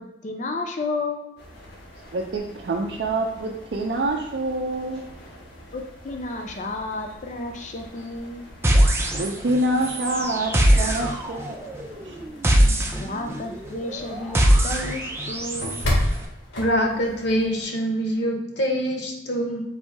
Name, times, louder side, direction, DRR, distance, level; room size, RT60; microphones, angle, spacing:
voice 1, 0.0-1.4 5.7-8.4 13.0-15.8, left 2 dB, 40° left, 3 dB, 0.5 m, -32 dB
sound 1, 1.4-17.6, left 1 dB, 85° left, 1.3 m, -36 dB
voice 2, 2.1-5.0 9.1-11.4 12.0-12.2, right 2 dB, 65° right, -1 dB, 0.4 m, -26 dB
sound 2, 8.6-9.6 9.8-15.8, equal, 15° right, 0.5 m, -22 dB
voice 3, 16.6-19.6, equal, 65° left, 1 dB, 0.9 m, -24 dB
4.0 x 2.7 x 4.5 m, 0.88 s
head